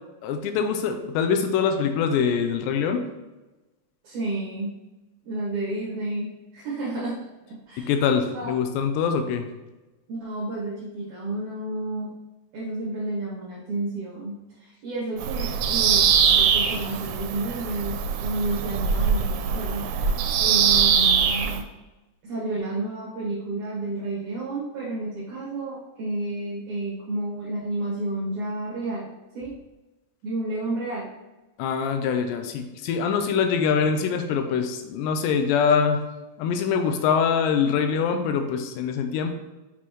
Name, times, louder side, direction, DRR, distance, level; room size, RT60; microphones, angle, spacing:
voice 1, 0.2-3.0 7.8-9.5 31.6-36.1 36.4-39.3, left 6 dB, 85° left, 6 dB, 2.7 m, -24 dB
voice 2, 4.0-4.8 5.2-7.2 7.5-7.9 8.3-8.5 10.1-12.2 12.5-19.9 20.4-21.7 22.2-29.6 30.2-31.1, right 2 dB, 60° right, -8 dB, 2.4 m, -31 dB
Bird vocalization bird call bird song, 15.2-21.6, right 7 dB, 90° right, 2.8 m, -22 dB
7.5 x 4.2 x 3.0 m, 1.1 s
omnidirectional pair, 4.9 m